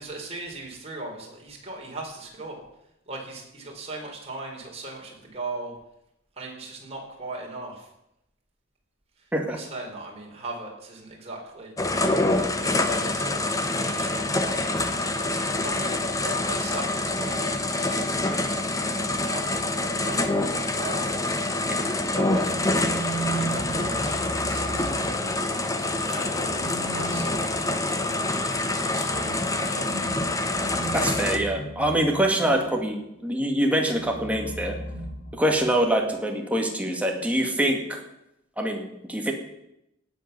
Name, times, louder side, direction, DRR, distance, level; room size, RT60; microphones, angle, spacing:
voice 1, 0.0-2.6 3.1-5.7 6.4-7.9 9.2-11.7 12.3-13.3 13.7-14.7 15.3-17.5 17.8-18.5 19.1-21.5 22.1-25.3 26.0-26.5 26.9-30.1, right 2 dB, 30° right, -1 dB, 4.4 m, -39 dB
sound 1, 11.8-31.4, left 2 dB, 15° left, 1.1 m, -26 dB
sound 2, 22.3-25.6 26.3-32.9 33.9-35.8, right 2 dB, 65° left, 2.5 m, -36 dB
voice 2, 30.9-34.7 35.4-38.0 38.6-39.3, right 1 dB, 5° right, 2 dB, 2.2 m, -25 dB
18.0 x 8.2 x 6.9 m, 0.83 s
head